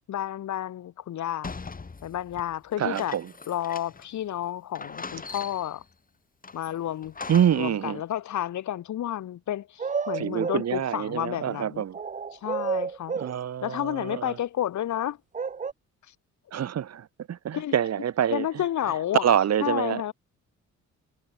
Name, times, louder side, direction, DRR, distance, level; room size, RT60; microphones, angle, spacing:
voice 1, 0.0-1.5 2.0-3.2 3.5-5.8 6.5-7.2 7.5-11.8 12.3-13.1 13.6-15.2 17.5-17.7 18.3-20.1, left 11 dB, 70° left, 3.0 m, -31 dB
sound 1, 1.4-4.2 4.4-4.5 4.7-5.8 6.4-7.8, left 4 dB, 30° left, 3.6 m, -41 dB
voice 2, 2.8-3.3 7.3-8.0 10.1-12.0 13.1-14.4 16.5-18.5 19.2-20.1, right 9 dB, 60° right, 2.3 m, -26 dB
sound 2, 9.8-10.7 11.9-13.4 15.3-15.7, right 5 dB, 25° right, 0.8 m, -30 dB
cardioid pair, 90°, 30 cm